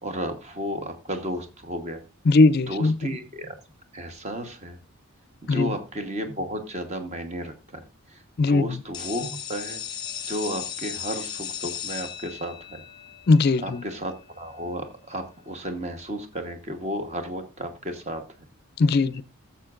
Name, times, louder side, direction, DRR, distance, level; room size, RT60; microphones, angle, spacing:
voice 1, 0.0-2.0 2.7-3.6 3.9-4.8 5.4-8.2 8.5-9.8 10.3-12.8 13.6-18.2, equal, 30° right, 1.0 m, -33 dB
voice 2, 2.3-2.9 5.5-5.7 8.4-8.8 13.3-13.8 18.8-19.2, left 3 dB, 45° left, 0.4 m, -19 dB
sound 1, 8.9-14.6, left 9 dB, 20° left, 0.9 m, -36 dB
15.5 x 7.1 x 2.5 m
head